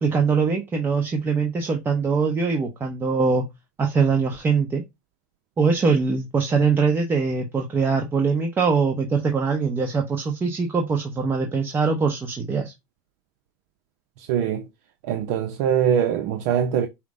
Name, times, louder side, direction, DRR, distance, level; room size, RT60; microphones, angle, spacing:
voice 1, 0.0-3.5 3.8-4.8 5.6-12.7, right 5 dB, 25° right, 0.8 m, -22 dB
voice 2, 14.2-14.7 15.0-16.9, right 8 dB, 70° right, 0.5 m, -22 dB
5.7 x 2.1 x 3.7 m
supercardioid pair, 115°, 10 cm